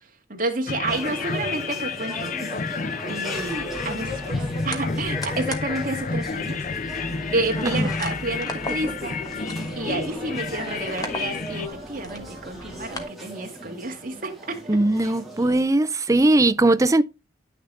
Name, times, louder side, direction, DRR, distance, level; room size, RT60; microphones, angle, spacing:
voice 1, 0.3-2.3 3.1-7.0 7.3-9.2 9.8-14.6, right 2 dB, 50° right, 2.2 m, -30 dB
sound 1, 0.7-11.7, left 4 dB, 45° left, 0.5 m, -30 dB
sound 2, 0.9-15.6, right 1 dB, ahead, 2.9 m, -38 dB
sound 3, 3.3-13.0, left 1 dB, 20° left, 1.3 m, -38 dB
voice 2, 14.7-17.0, right 2 dB, 20° right, 0.5 m, -19 dB
10.5 x 6.6 x 3.3 m
head